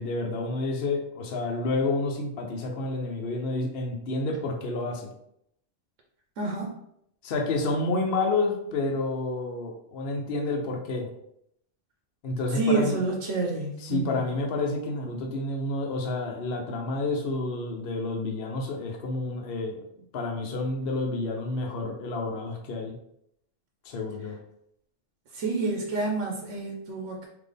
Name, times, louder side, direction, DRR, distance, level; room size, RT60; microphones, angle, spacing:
voice 1, 0.0-5.1 7.2-11.1 12.2-13.1 13.8-19.9 20.1-23.0 23.8-24.4, left 2 dB, 55° left, 2 dB, 0.9 m, -29 dB
voice 2, 6.4-6.7 12.5-14.2 25.3-27.3, right 3 dB, 90° right, -1 dB, 1.1 m, -28 dB
4.0 x 2.8 x 3.3 m, 0.76 s
omnidirectional pair, 1.2 m